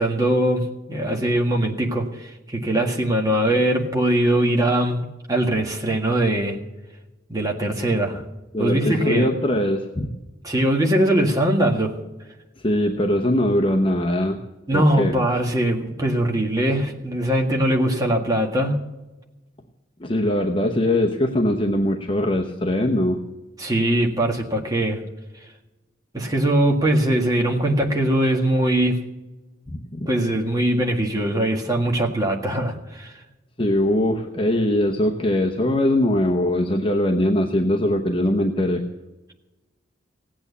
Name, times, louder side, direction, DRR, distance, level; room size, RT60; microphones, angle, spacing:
voice 1, 0.0-6.6 7.3-8.2 8.6-9.3 10.4-12.0 14.7-18.8 23.6-25.0 26.1-29.0 30.1-33.1, right 1 dB, 20° right, 0 dB, 1.8 m, -21 dB
voice 2, 8.5-10.1 12.6-14.4 14.7-15.1 20.0-23.2 29.7-30.1 33.6-38.8, left 1 dB, 30° left, 2 dB, 0.9 m, -21 dB
17.0 x 8.9 x 7.0 m, 1.1 s
head